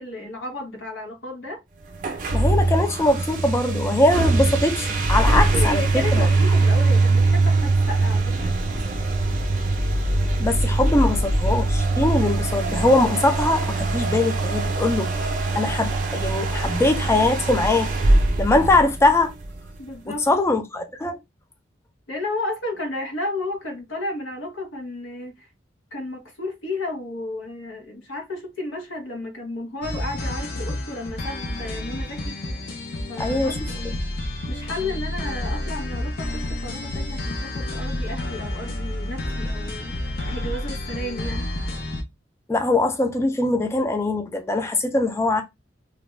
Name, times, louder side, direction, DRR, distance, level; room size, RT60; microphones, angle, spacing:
voice 1, 0.0-1.6 5.3-8.5 19.8-20.3 22.1-25.5 25.9-32.4 33.1-33.9 34.5-39.9 40.3-41.5, left 2 dB, 90° left, 0.9 m, -33 dB
sound 1, 2.0-19.5, right 2 dB, 45° right, 0.5 m, -22 dB
voice 2, 2.3-5.8 6.1-6.3 10.4-15.1 15.5-17.9 18.4-19.3 20.1-21.2 33.2-33.7 42.5-45.4, left 2 dB, 15° left, 0.3 m, -21 dB
sound 2, 29.8-42.0, left 1 dB, 55° left, 0.6 m, -30 dB
2.4 x 2.2 x 3.1 m
head